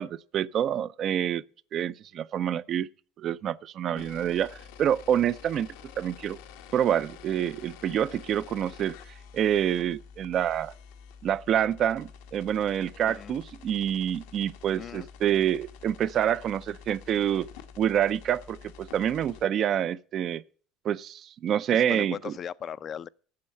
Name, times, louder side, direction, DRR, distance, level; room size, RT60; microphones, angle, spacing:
voice 1, 0.0-1.4 1.7-2.9 3.2-5.7 6.0-6.4 6.7-9.0 9.3-10.7 11.2-17.5 17.8-20.4 20.8-22.3, right 10 dB, 50° right, 0.5 m, -27 dB
sound 1, 4.0-19.4, left 7 dB, 80° left, 1.1 m, -48 dB
voice 2, 13.0-13.4 14.8-15.1 21.7-23.1, left 8 dB, 40° left, 0.4 m, -38 dB
8.6 x 7.0 x 7.6 m
supercardioid pair, 100°, 0 cm